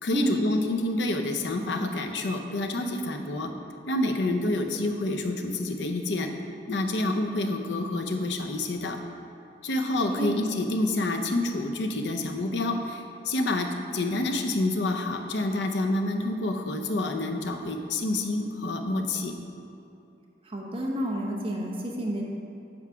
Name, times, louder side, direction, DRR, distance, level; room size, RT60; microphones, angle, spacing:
voice 1, 0.0-3.5 3.9-6.3 6.7-9.0 9.6-19.3, left 2 dB, 75° left, 4 dB, 0.7 m, -28 dB
voice 2, 10.0-10.3 20.4-22.2, right 1 dB, 30° right, -2 dB, 0.9 m, -30 dB
7.9 x 4.7 x 5.7 m, 2.8 s
head